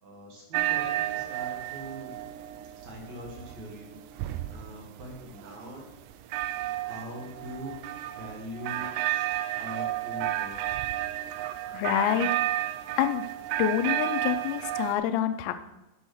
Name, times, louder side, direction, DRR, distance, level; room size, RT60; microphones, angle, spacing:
voice 1, 0.0-2.2 2.8-5.8 6.8-7.8 8.1-9.3 9.6-10.9, equal, 50° right, -1 dB, 2.4 m, -42 dB
sound 1, 0.5-14.9, right 14 dB, 85° right, 2.4 m, -32 dB
voice 2, 11.7-12.3 13.0-13.3 13.6-15.6, left 11 dB, 80° left, 10 dB, 2.8 m, -27 dB
9.1 x 6.2 x 6.3 m, 0.99 s
omnidirectional pair, 5.2 m